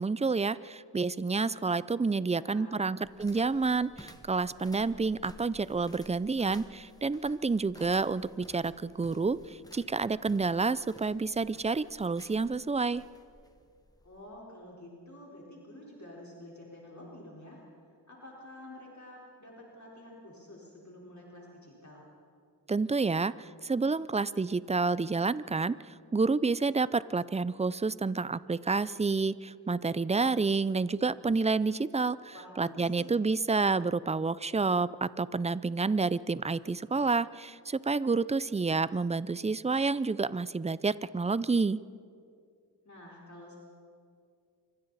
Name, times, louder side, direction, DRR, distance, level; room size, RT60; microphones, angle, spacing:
voice 1, 0.0-13.0 22.7-25.8 26.1-41.8, right 4 dB, 15° right, 17 dB, 0.4 m, -29 dB
voice 2, 2.3-3.0 14.0-17.6 18.1-22.1 32.3-33.1 42.8-43.6, left 1 dB, 45° left, -4 dB, 4.3 m, -49 dB
Walking up stairs from ground floor to top floor, 3.0-14.3, left 1 dB, 10° left, 1.5 m, -55 dB
27.0 x 24.5 x 4.1 m, 2.3 s
wide cardioid pair, 70°, 40 cm